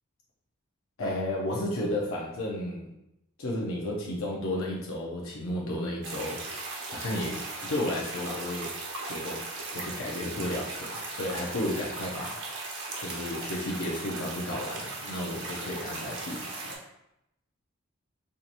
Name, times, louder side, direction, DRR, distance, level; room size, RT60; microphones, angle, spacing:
voice 1, 1.0-2.9 3.4-6.4 6.8-8.7 9.1-9.4 9.7-12.4 13.0-16.6, left 1 dB, 75° left, -2 dB, 0.6 m, -33 dB
sound 1, 6.0-16.8, right 3 dB, 60° right, 0.8 m, -38 dB
4.6 x 2.8 x 2.5 m, 0.83 s
head